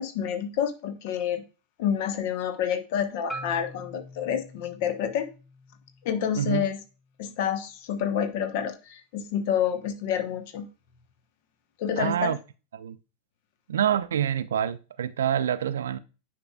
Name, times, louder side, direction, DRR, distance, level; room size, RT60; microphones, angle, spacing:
voice 1, 0.0-1.4 1.8-5.3 6.0-6.8 7.2-10.7 11.8-12.3, left 8 dB, 50° left, 1.0 m, -28 dB
Marimba xylophone, 3.3-7.5, right 1 dB, 10° left, 0.7 m, -44 dB
voice 2, 6.3-6.7 12.0-12.4 12.7-13.0 13.7-16.0, right 9 dB, 65° right, 0.4 m, -26 dB
9.7 x 5.0 x 2.3 m
figure-of-eight pair, 90°, 0 cm